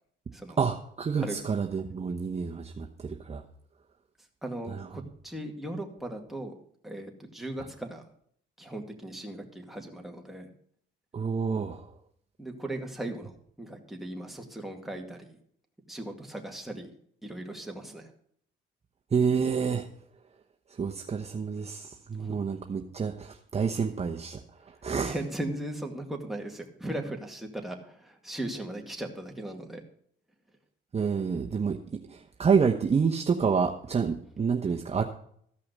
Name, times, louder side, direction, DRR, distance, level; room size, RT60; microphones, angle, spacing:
voice 1, 0.6-3.4 4.7-4.8 11.1-11.9 19.1-19.9 20.8-24.4 24.8-25.1 30.9-35.0, right 6 dB, 30° right, 2 dB, 1.0 m, -28 dB
voice 2, 4.4-6.5 6.8-8.0 8.6-10.5 12.4-13.3 13.6-15.3 15.9-16.9 17.2-18.1 22.2-22.4 24.9-29.8, right 1 dB, ahead, 1 dB, 2.2 m, -38 dB
14.0 x 5.7 x 6.6 m, 0.64 s
cardioid pair, 90°, 20 cm